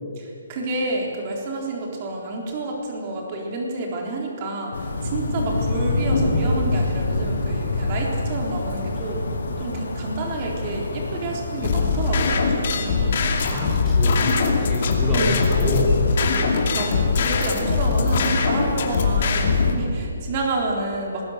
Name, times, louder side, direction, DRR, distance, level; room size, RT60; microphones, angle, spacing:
voice 1, 0.2-9.2 9.6-13.2 14.4-14.8 15.1-15.4 16.5-21.2, right 2 dB, 25° right, 0 dB, 3.8 m, -29 dB
sound 1, 4.7-19.8, left 2 dB, 80° left, 4.7 m, -28 dB
sound 2, 11.6-19.7, left 4 dB, 40° left, 2.6 m, -21 dB
voice 2, 13.5-15.9, left 1 dB, 10° right, -6 dB, 4.4 m, -26 dB
25.5 x 20.5 x 6.6 m, 2.6 s
hypercardioid pair, 175°, 0 cm